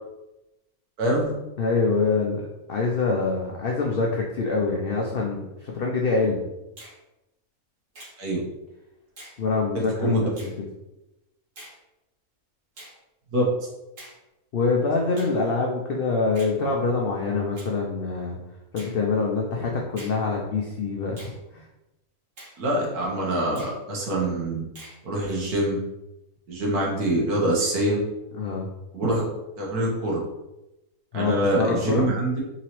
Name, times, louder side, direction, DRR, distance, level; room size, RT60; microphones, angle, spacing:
voice 1, 1.0-1.3 8.2-8.4 10.0-10.3 13.3-13.4 22.6-24.6 25.0-25.8 26.5-28.0 28.9-29.2 29.6-30.2 31.1-32.4, right 1 dB, 85° right, -3 dB, 1.6 m, -24 dB
voice 2, 1.6-6.5 9.4-10.5 14.5-18.4 18.7-21.7 28.3-28.7 31.1-32.1, left 4 dB, 90° left, -1 dB, 0.5 m, -25 dB
Finger snapping, 6.8-7.0 7.9-8.2 9.2-9.4 10.4-10.6 11.6-11.8 12.8-13.0 14.0-14.2 15.2-15.4 16.3-16.6 17.6-17.7 18.8-19.0 20.0-20.2 21.2-21.4 22.4-22.6 23.6-23.8 24.8-25.0, right 1 dB, 55° right, 1.7 m, -45 dB
3.8 x 2.9 x 2.9 m, 0.97 s
omnidirectional pair, 1.6 m